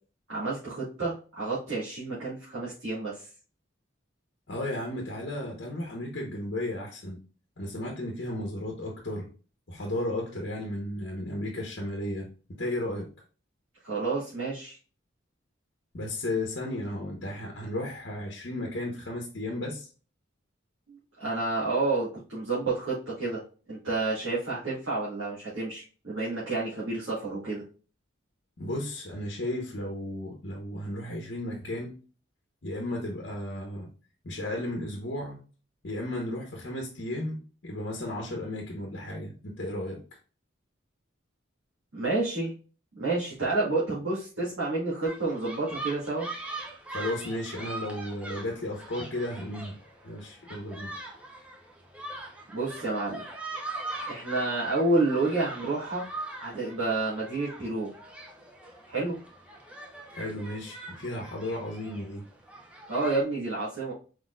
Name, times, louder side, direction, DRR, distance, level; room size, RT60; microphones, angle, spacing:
voice 1, 0.3-3.3 13.8-14.8 20.9-23.4 23.7-27.6 41.9-42.5 42.9-46.3 52.5-53.2 54.1-56.0 56.4-57.9 58.9-59.2 62.9-63.9, right 3 dB, 80° right, 2.1 m, -29 dB
voice 2, 4.5-7.2 7.6-9.3 9.7-13.1 15.9-19.9 28.6-31.9 32.6-33.9 34.2-35.4 35.8-40.0 46.9-49.8 50.0-50.9 60.1-62.2, left 1 dB, 60° left, 0.9 m, -34 dB
sound 1, 45.0-63.2, right 2 dB, 5° right, 0.8 m, -42 dB
4.7 x 4.1 x 2.4 m
head